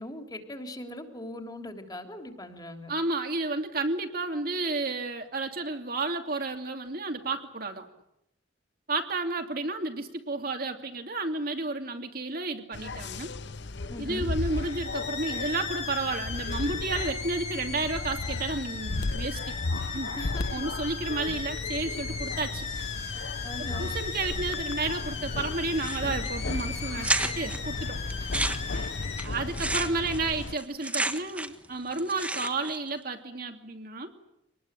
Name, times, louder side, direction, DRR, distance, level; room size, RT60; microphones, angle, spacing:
voice 1, 0.0-2.9 13.9-14.3 20.1-20.6 22.7-22.9 23.4-23.9 26.9-27.1 27.5-27.6 28.2-28.3, left 1 dB, 20° left, 5 dB, 3.2 m, -40 dB
voice 2, 2.9-7.9 8.9-13.3 14.0-19.5 19.9-20.2 20.5-22.7 23.6-27.1 27.4-28.0 29.2-34.1, right 3 dB, 50° right, 4 dB, 2.7 m, -32 dB
sound 1, 12.7-30.5, left 2 dB, 65° left, 0.9 m, -35 dB
sound 2, 14.5-29.2, left 6 dB, 35° left, 3.2 m, -37 dB
sound 3, 25.8-26.3 26.6-26.7 27.0-27.6 28.1-31.7 31.9-32.8, right 2 dB, 5° right, 1.4 m, -31 dB
26.0 x 20.0 x 9.0 m, 0.81 s
head